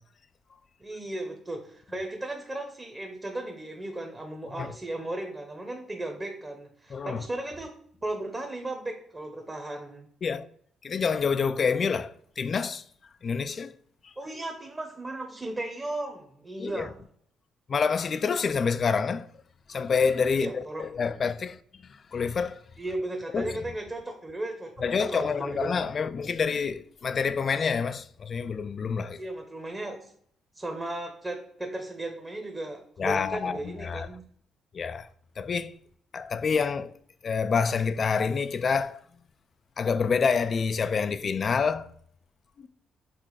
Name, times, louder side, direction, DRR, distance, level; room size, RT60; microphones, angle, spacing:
voice 1, 0.8-7.8 8.0-10.1 14.2-16.9 20.3-20.9 22.8-24.7 25.0-25.8 29.2-30.1 30.5-34.2, right 1 dB, 20° right, 1.0 m, -35 dB
voice 2, 6.9-7.2 10.2-10.5 10.8-12.8 13.2-13.7 16.6-16.9 17.7-19.3 19.7-21.6 22.1-22.6 23.3-23.5 24.8-29.2 33.0-34.1 34.7-35.1 35.4-35.7 36.1-36.9 37.2-39.0 39.8-41.9 42.6-42.7, left 5 dB, 45° left, 0.4 m, -27 dB
6.2 x 3.3 x 4.7 m
cardioid pair, 90°, 0 cm